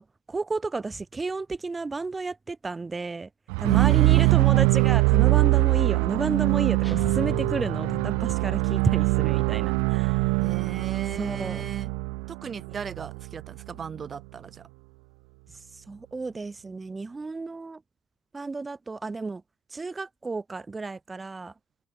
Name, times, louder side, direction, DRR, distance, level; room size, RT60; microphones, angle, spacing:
voice 1, 0.0-3.3 3.6-10.5 11.2-11.6 15.5-17.8 18.3-19.4 19.7-21.5, right 3 dB, 25° right, 4.3 m, -32 dB
sound 1, 3.5-13.5, right 40 dB or more, 75° right, 0.8 m, -23 dB
voice 2, 3.7-4.4 10.4-11.9 12.3-14.7, right 6 dB, 40° right, 5.9 m, -37 dB
sound 2, 6.8-8.5, left 1 dB, 10° left, 5.9 m, -36 dB
hypercardioid pair, 55°, 0 cm